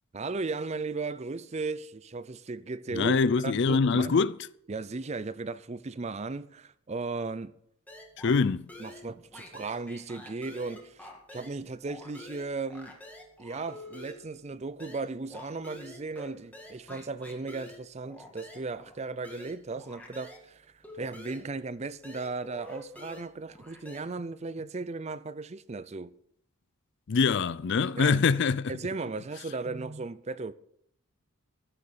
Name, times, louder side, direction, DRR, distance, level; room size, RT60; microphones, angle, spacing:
voice 1, 0.1-3.2 3.4-4.2 4.7-7.5 8.2-8.3 8.8-13.0 13.4-26.1 28.0-28.2 28.7-30.5, right 3 dB, 30° right, 0.5 m, -36 dB
voice 2, 2.9-4.3 8.2-8.6 27.1-28.7, left 5 dB, 55° left, 0.4 m, -24 dB
sound 1, 7.9-8.4 8.7-11.6 11.9-20.5 20.8-24.0, left 1 dB, 5° left, 1.9 m, -48 dB
15.0 x 6.7 x 6.8 m
head